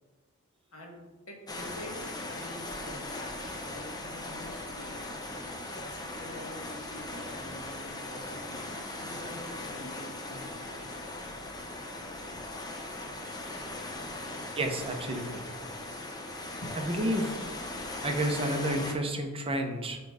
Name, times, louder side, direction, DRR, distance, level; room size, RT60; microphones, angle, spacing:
voice 1, 0.7-1.0 1.3-3.1 3.7-5.0 5.7-10.9 11.9-12.1 13.0-13.2 16.6-16.8, left 1 dB, 75° left, 0 dB, 1.8 m, -47 dB
sound 1, 1.5-18.9, left 2 dB, 20° left, 0.8 m, -39 dB
voice 2, 14.6-15.4 16.7-17.4 18.0-20.0, right 1 dB, 25° right, 4 dB, 0.8 m, -30 dB
7.0 x 5.3 x 4.8 m, 1.2 s
head